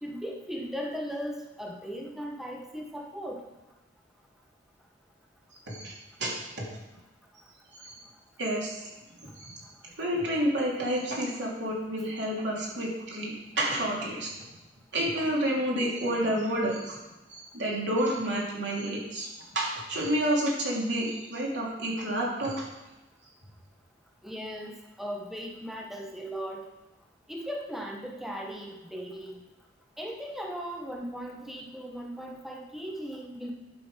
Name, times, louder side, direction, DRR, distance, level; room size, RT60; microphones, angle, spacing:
voice 1, 0.0-3.4 24.2-26.7 27.3-29.4 30.0-33.5, equal, ahead, -1 dB, 0.9 m, -37 dB
voice 2, 5.7-6.8 7.8-8.0 8.4-8.8 9.3-9.6 10.0-14.3 14.9-17.0 17.3-19.3 19.5-22.7, right 1 dB, 80° right, -3 dB, 2.9 m, -30 dB
11.5 x 6.0 x 5.0 m, 1.0 s
head